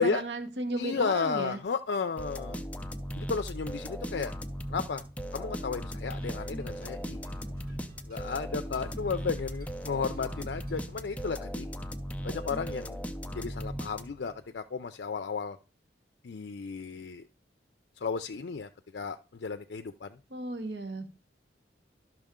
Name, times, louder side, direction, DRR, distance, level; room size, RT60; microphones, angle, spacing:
voice 1, 0.0-1.6 20.3-21.1, right 2 dB, 70° right, 8 dB, 1.1 m, -34 dB
voice 2, 0.8-2.6 3.2-4.3 4.7-5.0 5.3-7.2 8.1-11.7 12.2-13.0 13.3-15.6 16.2-17.3 18.0-20.2, left 5 dB, 65° left, 8 dB, 0.4 m, -33 dB
sound 1, 2.2-14.4, equal, 10° left, 0.5 m, -38 dB
sound 2, 6.2-11.3, left 1 dB, 55° right, 1.5 m, -53 dB
12.0 x 6.1 x 3.7 m, 0.35 s
head